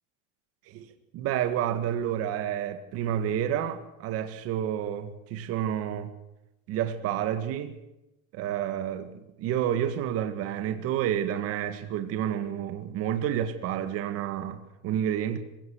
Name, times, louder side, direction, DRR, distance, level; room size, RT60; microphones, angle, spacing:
voice 1, 0.7-6.1 6.7-7.8 8.3-15.4, right 10 dB, 40° right, 2.0 m, -30 dB
27.0 x 17.5 x 6.5 m
cardioid pair, 170°, 35 cm